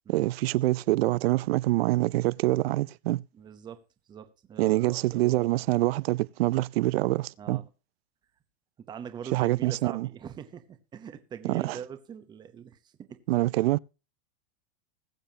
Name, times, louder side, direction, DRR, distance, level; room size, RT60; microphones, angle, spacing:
voice 1, 0.1-3.2 4.6-7.6 9.3-10.1 11.4-11.8 13.3-13.8, right 18 dB, 70° right, 0.5 m, -25 dB
voice 2, 3.3-3.8 4.1-5.6 7.4-7.7 8.9-13.2, right 8 dB, 15° right, 0.8 m, -43 dB
20.5 x 7.0 x 2.8 m
supercardioid pair, 170°, 31 cm